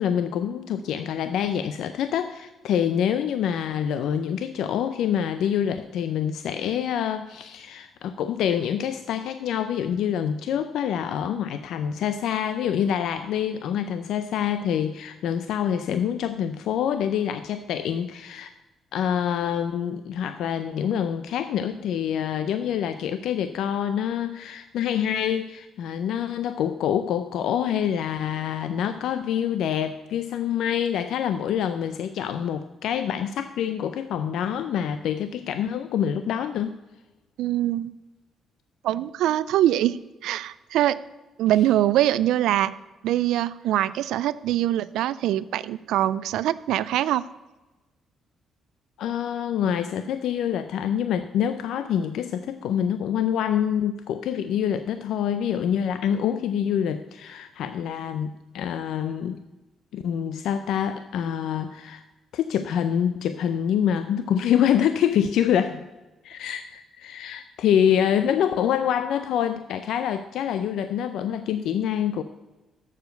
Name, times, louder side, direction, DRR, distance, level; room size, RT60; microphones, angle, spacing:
voice 1, 0.0-18.5 18.9-36.7 49.0-59.4 59.9-62.0 62.3-65.8 66.2-72.2, left 9 dB, 80° left, 10 dB, 0.5 m, -26 dB
voice 2, 37.4-37.9 38.8-41.0 41.4-42.7 43.0-47.2, right 13 dB, 85° right, 16 dB, 0.3 m, -23 dB
7.3 x 6.9 x 7.8 m, 1.1 s
cardioid pair, 90°, 0 cm